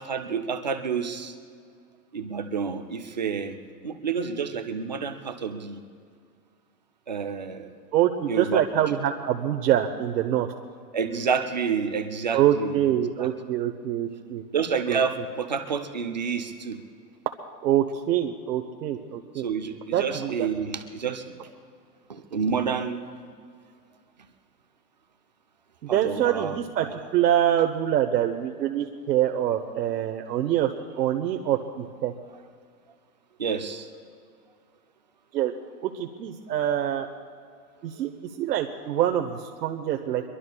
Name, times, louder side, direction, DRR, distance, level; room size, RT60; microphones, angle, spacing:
voice 1, 0.0-1.3 2.1-3.6 3.8-5.8 7.1-7.7 8.3-8.8 10.9-12.9 13.2-13.3 14.5-16.8 19.3-21.5 22.1-23.0 25.9-27.0 33.4-33.9, right 6 dB, 30° right, 7 dB, 0.4 m, -29 dB
voice 2, 7.9-10.5 12.3-14.4 14.9-15.0 17.6-19.4 19.9-20.5 25.9-26.9 27.1-32.1 35.3-35.5 35.8-37.1 37.8-40.2, right 11 dB, 80° right, 4 dB, 1.1 m, -25 dB
23.0 x 22.5 x 2.3 m, 2.1 s
supercardioid pair, 175°, 49 cm